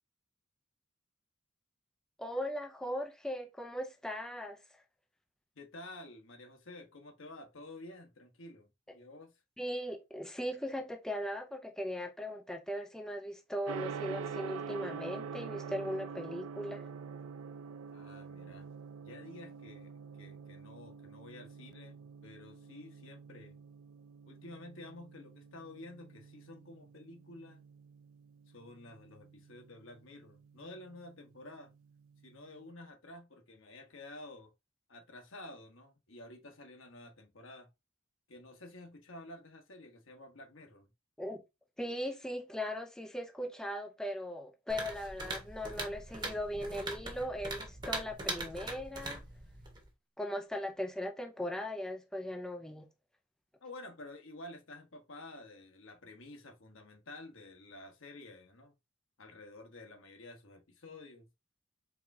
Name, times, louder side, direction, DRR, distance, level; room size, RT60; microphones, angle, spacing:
voice 1, 2.2-4.6 9.6-16.9 41.2-41.4 41.8-49.2 50.2-52.9, equal, 5° left, 0.4 m, -38 dB
voice 2, 5.5-9.3 17.9-18.7 19.0-19.9 20.2-23.6 24.3-27.6 28.5-31.7 32.2-34.5 34.9-37.7 38.3-40.9 53.6-58.7 59.2-61.3, left 2 dB, 65° left, 1.2 m, -51 dB
Gong, 13.7-32.6, right 6 dB, 85° right, 0.4 m, -46 dB
sound 1, 44.7-49.9, right 2 dB, 20° right, 1.1 m, -41 dB
4.6 x 3.6 x 2.6 m
head